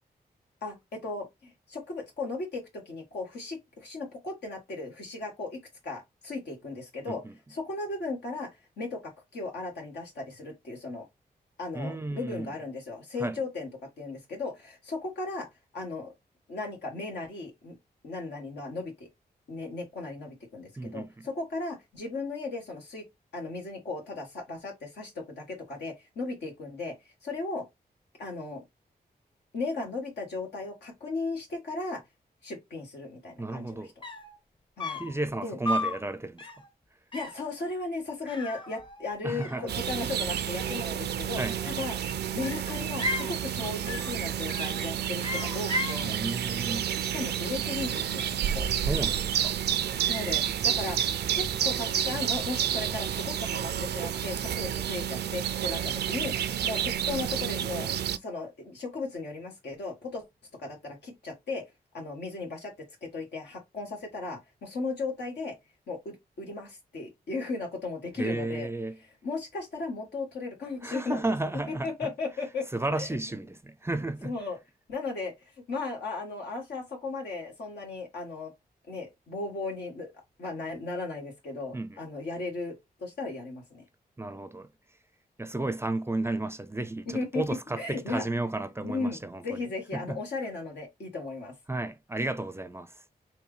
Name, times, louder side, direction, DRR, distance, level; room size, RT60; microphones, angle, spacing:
voice 1, 0.6-7.2 7.5-8.5 8.8-11.1 11.6-13.7 14.0-15.5 15.7-16.1 16.5-17.8 18.0-19.1 19.5-23.0 23.3-26.9 27.2-27.7 28.2-28.6 29.5-32.0 32.4-33.9 34.8-35.0 35.4-35.6 37.1-42.0 42.3-46.1 47.0-48.7 50.0-57.9 58.2-60.3 60.6-61.6 61.9-62.7 63.0-65.6 65.9-68.7 69.2-71.2 71.7-73.1 74.2-74.6 74.9-75.3 75.7-78.5 78.9-80.1 80.4-83.8 87.1-87.4 87.8-88.2 88.8-91.5, left 3 dB, 90° left, 1.6 m, -36 dB
voice 2, 11.7-12.5 13.2-13.4 20.8-21.3 33.4-33.9 35.0-36.5 39.2-39.7 41.4-41.6 46.0-46.9 48.8-49.6 68.2-69.0 70.8-71.9 72.7-74.3 81.7-82.0 84.2-84.7 85.4-89.6 89.9-90.2 91.7-93.0, right 2 dB, 15° right, 0.4 m, -33 dB
sound 1, 33.7-33.8 34.0-34.4 34.8-35.2 35.6-36.0 36.4-36.7 37.1-37.5 38.3-39.1 39.4-40.1 41.3-41.9 42.4-43.3 43.9-44.2 44.5-44.8 45.2-46.0, left 1 dB, 30° left, 0.8 m, -34 dB
sound 2, 39.7-58.2, right 9 dB, 80° right, 0.4 m, -30 dB
4.4 x 2.7 x 3.2 m
cardioid pair, 65°, 17 cm